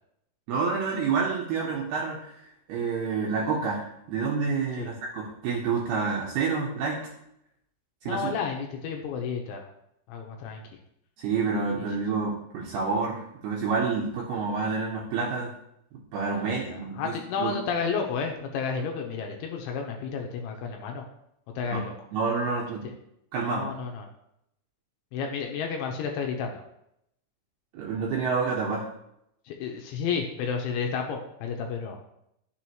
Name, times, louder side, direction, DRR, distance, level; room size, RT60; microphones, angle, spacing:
voice 1, 0.5-7.1 8.0-8.3 11.2-15.5 15.9-17.6 21.7-21.8 22.1-22.8 23.3-23.6 27.7-28.9, right 5 dB, 75° right, -2 dB, 2.4 m, -28 dB
voice 2, 8.0-9.7 10.1-10.6 16.4-21.1 21.6-21.9 23.4-24.1 25.1-26.6 29.5-32.0, left 6 dB, 80° left, 2 dB, 3.0 m, -31 dB
11.5 x 6.9 x 3.0 m, 0.77 s
omnidirectional pair, 5.9 m